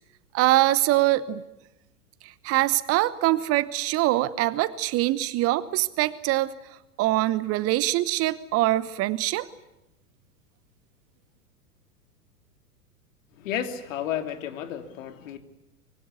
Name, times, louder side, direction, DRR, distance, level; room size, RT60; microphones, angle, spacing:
voice 1, 0.3-1.4 2.4-6.5 7.0-9.5, right 16 dB, 30° right, 17 dB, 1.0 m, -23 dB
voice 2, 13.4-15.4, left 10 dB, 55° left, 7 dB, 3.2 m, -32 dB
25.0 x 24.0 x 8.5 m, 0.92 s
figure-of-eight pair, 95°, 46 cm